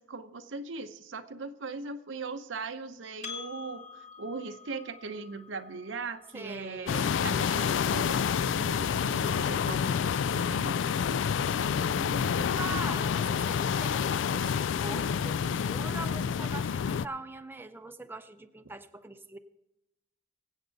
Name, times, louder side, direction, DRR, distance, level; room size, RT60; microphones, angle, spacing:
voice 1, 0.0-12.5, right 4 dB, 85° right, 8 dB, 0.8 m, -40 dB
Percussion, 3.2-8.0, left 5 dB, 40° left, 1.5 m, -48 dB
voice 2, 6.3-7.5 12.5-19.4, right 3 dB, 10° right, 7 dB, 0.5 m, -42 dB
sound 1, 6.9-17.1, left 7 dB, 80° left, 0.3 m, -28 dB
sound 2, 7.8-12.4 12.6-12.9, equal, 55° left, 3.1 m, -50 dB
24.0 x 8.2 x 4.0 m, 0.96 s
head